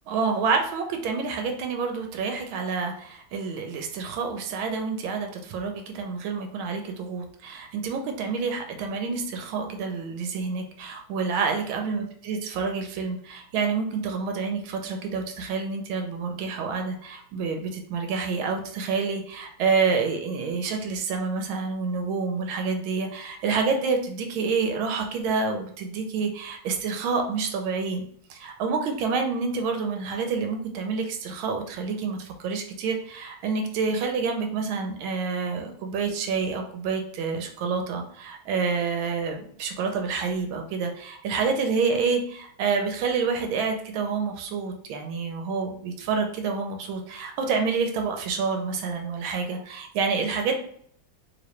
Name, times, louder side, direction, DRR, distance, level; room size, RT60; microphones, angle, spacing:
voice 1, 0.1-28.0 28.3-50.6, right 5 dB, 90° right, 4 dB, 1.4 m, -28 dB
3.4 x 3.0 x 3.0 m, 0.63 s
omnidirectional pair, 2.2 m